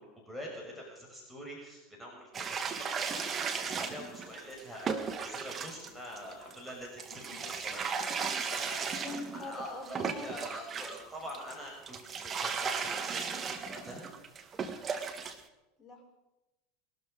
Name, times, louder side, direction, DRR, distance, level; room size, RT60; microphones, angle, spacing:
voice 1, 0.0-7.9 8.5-8.8 9.3-13.3 13.7-14.1, equal, ahead, -3 dB, 6.0 m, -45 dB
sound 1, 2.3-11.0 11.3-15.4, right 5 dB, 30° right, 1.7 m, -36 dB
Laughter, 7.1-9.8 12.6-13.4 13.7-14.2, left 8 dB, 60° left, 2.7 m, -53 dB
voice 2, 9.0-10.4 15.8-16.0, left 2 dB, 20° left, 2 dB, 4.4 m, -43 dB
21.5 x 12.5 x 5.2 m, 1.0 s
hypercardioid pair, 80°, 0 cm